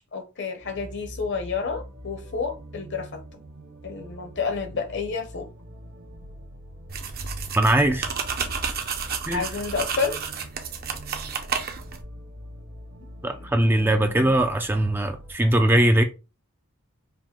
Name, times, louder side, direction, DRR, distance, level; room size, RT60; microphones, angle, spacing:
voice 1, 0.1-3.4 3.8-5.5 9.3-10.2 13.2-14.3, left 5 dB, 60° left, 0.9 m, -30 dB
sound 1, 0.6-15.3, equal, 65° right, 1.1 m, -44 dB
sound 2, 6.9-12.0, right 6 dB, 45° right, 0.6 m, -31 dB
voice 2, 7.6-8.1 9.3-9.5 13.2-16.0, right 1 dB, 10° right, 0.3 m, -20 dB
4.8 x 2.1 x 3.6 m
head